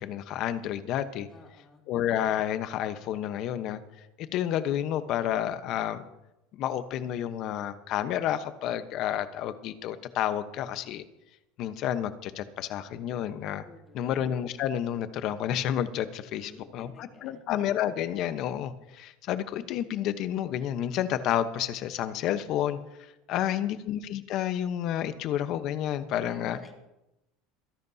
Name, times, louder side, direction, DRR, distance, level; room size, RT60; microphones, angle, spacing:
voice 1, 0.0-1.3 1.9-3.8 4.2-6.0 6.6-11.0 11.6-13.6 13.9-26.6, left 11 dB, 55° left, 11 dB, 1.0 m, -30 dB
voice 2, 1.3-1.8 13.6-14.1 16.3-17.4 26.2-26.7, left 3 dB, 25° left, 1 dB, 2.4 m, -52 dB
26.0 x 10.5 x 2.8 m, 0.94 s
supercardioid pair, 115°, 0 cm